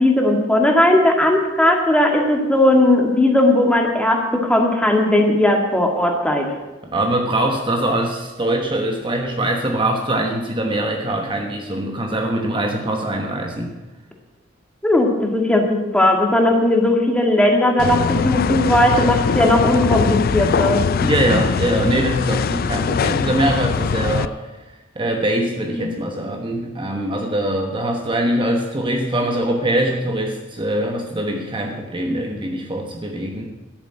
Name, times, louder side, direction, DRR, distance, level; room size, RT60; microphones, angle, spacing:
voice 1, 0.0-6.5 14.8-20.8 25.7-25.9, left 1 dB, 5° left, 2 dB, 1.9 m, -17 dB
voice 2, 6.9-13.7 21.0-24.3 24.9-33.5, right 1 dB, 25° right, 2 dB, 1.2 m, -22 dB
sound 1, 17.8-24.3, left 5 dB, 50° left, 0.4 m, -21 dB
13.0 x 7.1 x 8.9 m, 1.1 s
head